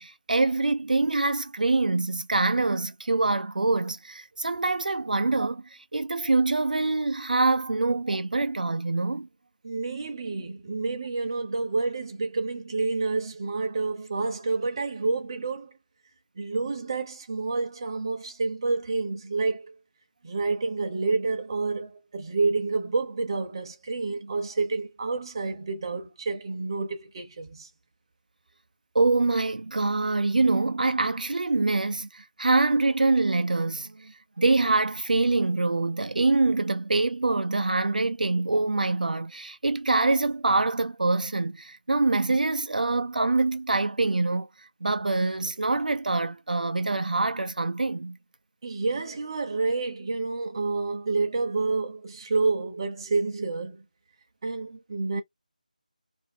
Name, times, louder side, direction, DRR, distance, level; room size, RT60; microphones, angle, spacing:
voice 1, 0.0-9.3 28.9-44.5 44.8-48.2, right 3 dB, 75° right, 0.4 m, -25 dB
voice 2, 9.6-15.8 16.4-19.7 20.2-27.7 48.6-53.8 54.4-55.2, right 3 dB, 30° right, 0.7 m, -29 dB
2.6 x 2.5 x 3.3 m
figure-of-eight pair, 170°, 5 cm